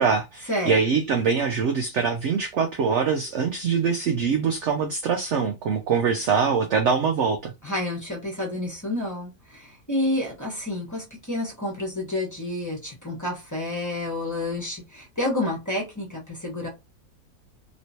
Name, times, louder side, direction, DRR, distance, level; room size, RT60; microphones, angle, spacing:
voice 1, 0.0-7.5, right 6 dB, 65° right, 0.7 m, -23 dB
voice 2, 7.6-16.7, left 1 dB, 15° left, 1.1 m, -29 dB
3.1 x 3.0 x 2.7 m
omnidirectional pair, 1.6 m